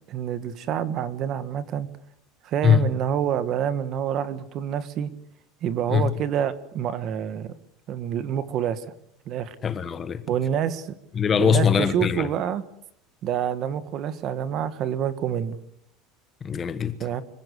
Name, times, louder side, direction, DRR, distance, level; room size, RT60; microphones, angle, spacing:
voice 1, 0.1-1.9 2.4-5.1 5.6-7.5 7.9-8.8 9.2-9.5 10.3-10.9 11.4-12.6 13.2-15.6 17.0-17.2, right 9 dB, 40° right, 1.6 m, -27 dB
voice 2, 9.6-10.2 11.2-12.3 16.4-16.9, left 8 dB, 20° left, 1.3 m, -21 dB
25.5 x 16.0 x 8.3 m
cardioid pair, 165°, 0 cm